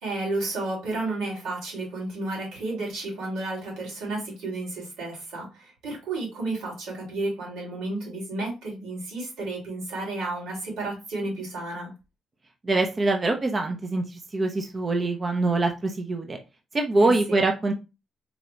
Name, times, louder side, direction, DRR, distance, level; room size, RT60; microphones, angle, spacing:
voice 1, 0.0-11.9 17.0-17.4, right 2 dB, 90° right, -2 dB, 2.6 m, -32 dB
voice 2, 12.6-16.4 16.7-17.7, right 2 dB, 30° right, 3 dB, 0.6 m, -24 dB
4.0 x 2.3 x 4.4 m, 0.28 s
cardioid pair, 90°, 0 cm